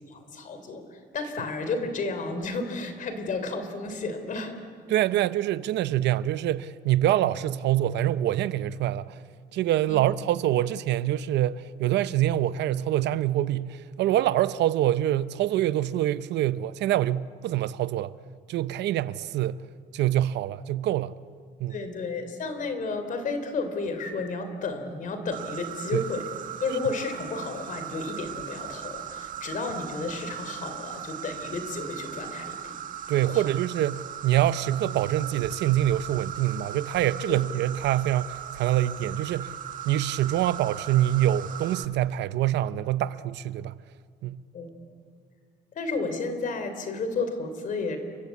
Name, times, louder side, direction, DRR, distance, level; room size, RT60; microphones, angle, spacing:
voice 1, 0.1-4.6 9.9-10.0 21.7-26.2 26.6-32.8 33.3-33.5 37.3-37.4 44.5-44.7 45.7-48.0, left 3 dB, 50° left, 3.6 m, -32 dB
voice 2, 4.9-9.2 9.5-18.1 18.5-19.6 19.9-21.1 21.6-21.8 25.9-26.1 33.1-39.5 39.8-43.7 44.2-44.4, right 13 dB, 85° right, 0.7 m, -25 dB
Insect, 25.3-41.9, right 9 dB, 50° right, 1.6 m, -38 dB
29.5 x 23.0 x 8.5 m
cardioid pair, 155°, 17 cm